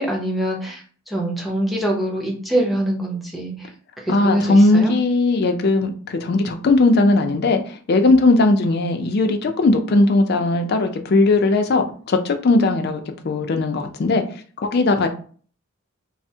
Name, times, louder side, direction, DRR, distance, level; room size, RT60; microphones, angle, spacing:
voice 1, 0.0-3.7 4.0-4.9, right 1 dB, ahead, -2 dB, 0.6 m, -24 dB
voice 2, 4.1-14.2 14.6-15.1, left 2 dB, 50° left, 6 dB, 0.4 m, -18 dB
3.2 x 2.0 x 2.7 m, 0.43 s
head